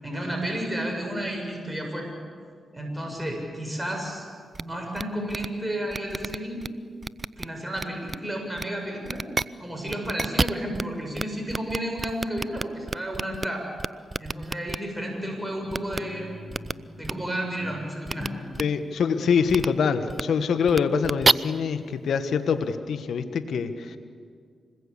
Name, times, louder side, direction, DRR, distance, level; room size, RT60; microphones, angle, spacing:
voice 1, 0.0-2.1 2.7-4.2 4.6-6.6 7.4-9.2 9.6-13.6 14.2-16.3 17.0-18.3, right 1 dB, 10° right, 1 dB, 7.3 m, -32 dB
sound 1, 4.5-4.6 5.0-5.1 5.3-5.5 5.9-6.7 7.0-7.5 7.8-8.2 8.6-8.7 9.0-9.4 9.9-10.8 11.2-11.3 11.5-13.5 13.8-14.8 15.7-16.0 16.5-16.7 17.0-17.1 18.1-18.3 18.5-18.6 19.5-19.7 20.1-20.2 20.7-21.3, right 3 dB, 35° right, 0.6 m, -27 dB
Guitar, 15.6-22.8, left 1 dB, 30° left, 8.0 m, -44 dB
voice 2, 18.6-24.0, left 6 dB, 75° left, 9 dB, 1.4 m, -25 dB
26.5 x 21.0 x 8.5 m, 2.1 s
supercardioid pair, 50°, 0 cm